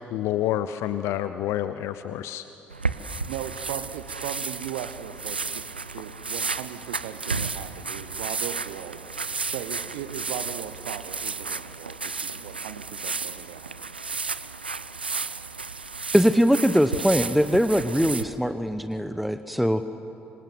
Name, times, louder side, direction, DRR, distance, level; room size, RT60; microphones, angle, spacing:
voice 1, 0.1-2.4, left 12 dB, 60° left, 12 dB, 0.7 m, -28 dB
sound 1, 2.7-18.2, right 4 dB, 90° right, 0.5 m, -33 dB
voice 2, 3.3-9.1 9.5-13.7, right 11 dB, 70° right, 11 dB, 0.9 m, -38 dB
voice 3, 16.1-19.8, equal, ahead, 11 dB, 1.0 m, -21 dB
26.0 x 25.5 x 7.8 m, 2.9 s
figure-of-eight pair, 45°, 5 cm